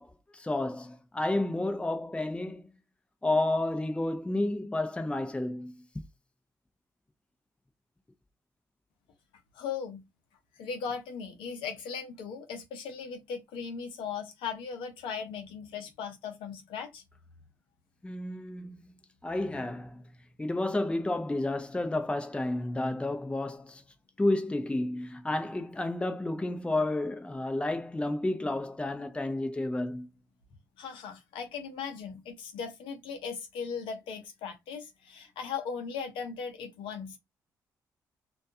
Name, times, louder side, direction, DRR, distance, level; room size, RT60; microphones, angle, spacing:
voice 1, 0.0-2.7 3.2-5.8 18.0-18.8 19.2-20.0 20.4-23.8 24.2-30.1, left 2 dB, 10° left, 0.5 m, -31 dB
voice 2, 9.5-10.1 10.6-17.0 30.8-37.2, left 6 dB, 75° left, 0.7 m, -38 dB
2.3 x 2.2 x 2.6 m
hypercardioid pair, 45°, 9 cm